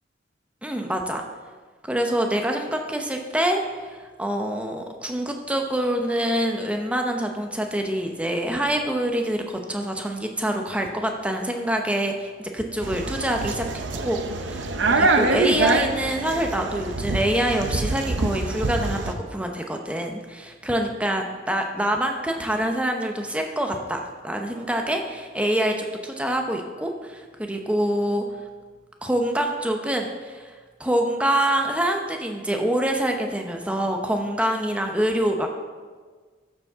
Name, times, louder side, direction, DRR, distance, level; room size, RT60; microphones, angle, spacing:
voice 1, 0.6-1.2 1.8-13.6 13.9-28.2 29.0-30.5 30.8-35.5, right 1 dB, 5° right, 3 dB, 0.7 m, -26 dB
sound 1, 12.8-19.1, right 3 dB, 70° right, 0.7 m, -25 dB
12.5 x 7.2 x 3.6 m, 1.5 s
head